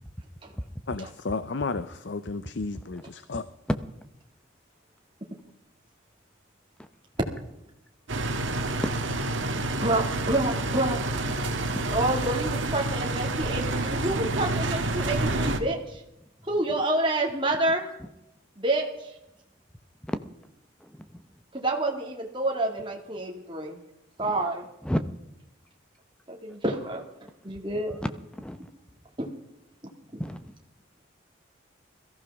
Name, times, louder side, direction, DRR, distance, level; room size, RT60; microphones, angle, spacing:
voice 1, 0.9-3.4, left 3 dB, 60° left, 13 dB, 0.6 m, -32 dB
sound 1, 8.1-15.6, right 2 dB, 70° right, 1.6 m, -28 dB
voice 2, 9.2-9.7 11.2-11.4 11.7-12.2 17.5-17.7 20.0-20.2 20.8-21.2 24.2-24.3 24.8-25.0 26.5-26.6 28.0-28.1 28.3-28.7 30.2-30.5, equal, 5° left, 9 dB, 0.8 m, -34 dB
voice 3, 9.8-11.0 11.9-16.0 16.5-17.9 18.6-19.2 21.5-23.8 24.2-24.7 26.3-27.0 27.4-28.0 29.2-29.3 30.1-30.2, right 2 dB, 25° right, 1 dB, 2.1 m, -28 dB
21.5 x 15.0 x 3.6 m, 0.87 s
head